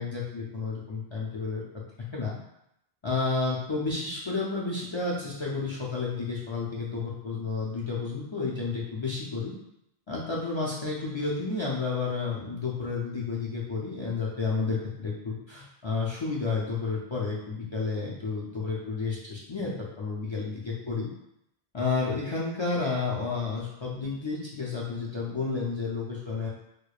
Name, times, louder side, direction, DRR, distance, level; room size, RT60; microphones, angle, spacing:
voice 1, 0.0-1.6 2.1-2.4 3.0-9.6 10.1-21.1 21.7-26.5, left 4 dB, 45° left, -5 dB, 0.4 m, -31 dB
4.6 x 2.2 x 2.3 m, 0.80 s
omnidirectional pair, 1.1 m